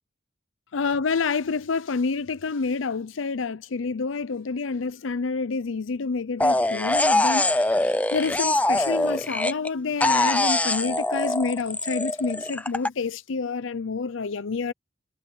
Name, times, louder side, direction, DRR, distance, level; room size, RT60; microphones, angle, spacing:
voice 1, 0.7-14.7, left 4 dB, 90° left, 0.6 m, -28 dB
sound 1, 6.4-9.7 10.0-12.9, left 2 dB, 10° left, 0.6 m, -23 dB
head